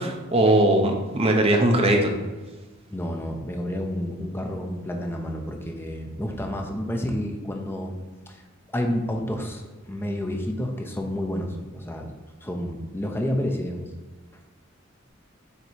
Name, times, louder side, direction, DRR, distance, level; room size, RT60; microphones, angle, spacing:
voice 1, 0.0-2.1, right 1 dB, 30° right, 2 dB, 0.8 m, -20 dB
voice 2, 2.9-8.0 8.3-8.4 8.7-9.6 9.9-12.1 12.4-13.9, equal, 10° left, 2 dB, 0.7 m, -30 dB
6.8 x 3.0 x 4.6 m, 1.3 s
head